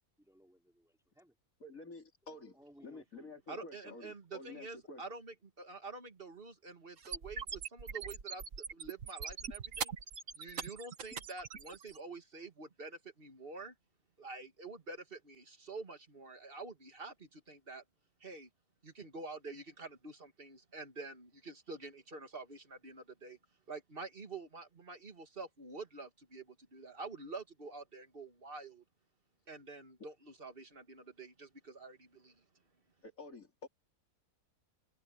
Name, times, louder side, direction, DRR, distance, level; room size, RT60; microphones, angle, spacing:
voice 1, 0.2-1.4 2.3-3.4, equal, ahead, 4.4 m, -62 dB
voice 2, 1.6-2.6 2.8-5.0 33.0-33.7, left 2 dB, 65° left, 3.6 m, -50 dB
voice 3, 3.5-8.4 8.7-9.9 10.3-13.7 14.2-17.8 18.2-18.5 18.8-23.4 23.7-28.8 29.5-32.4, right 3 dB, 35° right, 2.3 m, -48 dB
sound 1, 7.0-12.0, right 6 dB, 60° right, 1.6 m, -42 dB
omnidirectional pair, 1.6 m